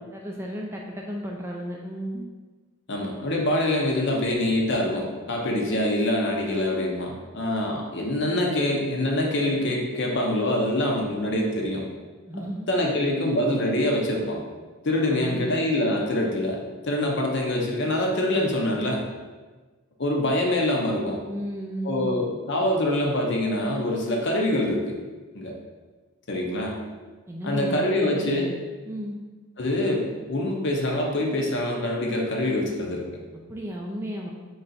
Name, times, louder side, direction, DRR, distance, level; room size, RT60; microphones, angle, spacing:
voice 1, 0.1-2.2 12.3-13.0 15.1-15.5 21.3-22.1 27.3-28.4 28.9-29.1 33.5-34.3, equal, 10° right, -2 dB, 0.4 m, -34 dB
voice 2, 2.9-11.8 12.7-14.4 14.8-19.0 20.0-21.2 21.8-25.0 25.3-25.5 26.3-26.8 27.4-28.5 29.6-33.2, left 1 dB, 50° left, 0 dB, 0.7 m, -25 dB
3.9 x 3.3 x 4.1 m, 1.3 s
head